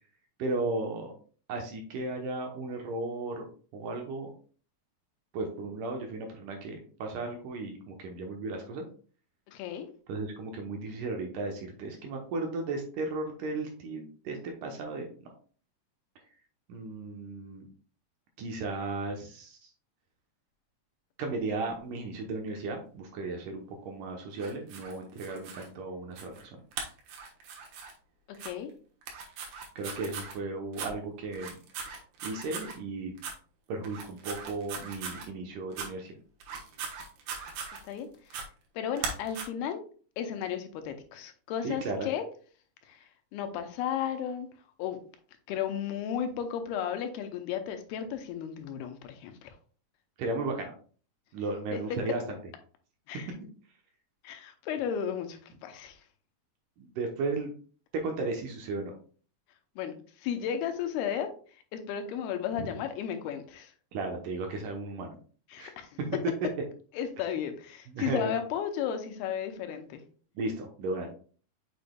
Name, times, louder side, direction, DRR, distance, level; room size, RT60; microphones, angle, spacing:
voice 1, 0.4-1.1 1.5-3.4 3.7-4.3 5.3-8.9 10.1-15.3 16.7-17.6 18.4-19.7 21.2-26.6 29.8-31.5 32.2-33.1 33.7-36.1 41.6-42.1 50.2-50.7 51.3-52.4 56.8-57.5 57.9-58.9 62.6-62.7 63.9-65.2 65.6-65.7 67.9-68.3 70.4-71.1, right 3 dB, 70° right, 3 dB, 2.2 m, -35 dB
voice 2, 9.5-9.9 28.4-28.7 37.3-37.4 37.9-38.4 38.8-39.8 40.2-42.2 42.9-43.0 43.3-44.5 44.8-45.0 45.5-49.6 51.7-52.0 53.1-53.3 54.2-56.0 59.8-61.3 61.7-63.7 65.5-66.0 67.0-70.0, left 8 dB, 85° left, 7 dB, 2.8 m, -34 dB
sound 1, 24.4-25.7 26.2-26.4 26.7-27.9 28.3-28.5 29.0-30.4 30.7-30.9 31.3-32.8 33.2-33.4 33.8-35.3 35.7-35.9 36.4-38.0 38.3-38.5 39.0-39.4, right 5 dB, 90° right, 3.2 m, -39 dB
6.8 x 6.2 x 2.2 m, 0.42 s
omnidirectional pair, 4.4 m